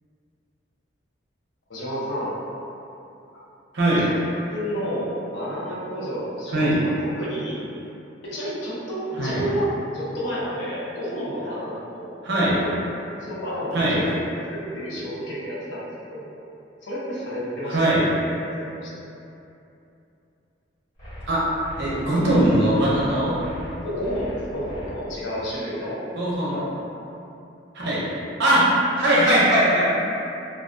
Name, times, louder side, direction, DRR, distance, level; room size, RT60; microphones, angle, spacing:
voice 1, 1.7-2.3 4.0-4.2 4.5-6.9 7.2-7.6 8.2-9.6 9.9-12.1 12.5-12.7 13.2-14.1 14.4-16.3 16.8-17.8 18.7-19.0 23.8-26.0 26.5-26.6 27.9-28.2, equal, 90° left, -7 dB, 0.6 m, -30 dB
voice 2, 12.2-12.6 13.7-14.0 17.7-18.0 21.3-21.4 21.8-23.4 26.2-26.6 27.7-28.0 28.4-28.6 29.0-29.8, right 1 dB, 65° right, -8 dB, 0.7 m, -20 dB
sound 1, 21.0-24.9, left 1 dB, 50° left, 1.3 m, -39 dB
2.4 x 2.2 x 2.4 m, 2.8 s
head